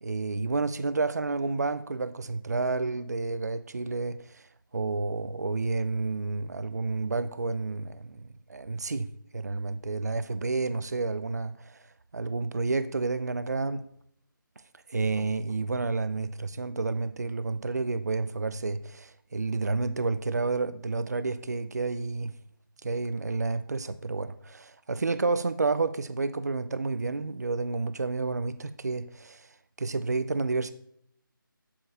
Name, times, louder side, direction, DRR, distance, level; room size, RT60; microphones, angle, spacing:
voice 1, 0.0-11.8 12.1-13.8 14.9-22.4 22.8-29.5 29.8-30.7, right 3 dB, 50° right, 0.6 m, -30 dB
8.7 x 7.6 x 7.1 m
figure-of-eight pair, 160°, 12 cm